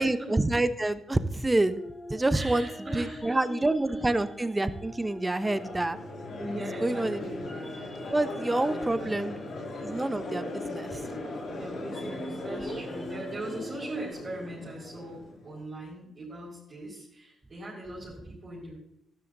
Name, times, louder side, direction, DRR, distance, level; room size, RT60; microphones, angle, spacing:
voice 1, 0.0-1.8 2.1-2.7 2.9-6.0 6.8-7.2 8.1-9.3 9.8-11.0, right 2 dB, 20° right, 12 dB, 0.9 m, -27 dB
sound 1, 1.5-14.1, left 1 dB, 20° left, 1.9 m, -44 dB
voice 2, 2.3-3.5 3.9-4.0 6.4-7.5 8.0-8.2 8.9-9.1 11.4-18.8, right 1 dB, 45° right, -7 dB, 4.8 m, -40 dB
Crowd, 5.4-15.6, left 2 dB, 60° left, 2.6 m, -38 dB
12.5 x 10.5 x 2.7 m, 0.80 s
hypercardioid pair, 45°, 0 cm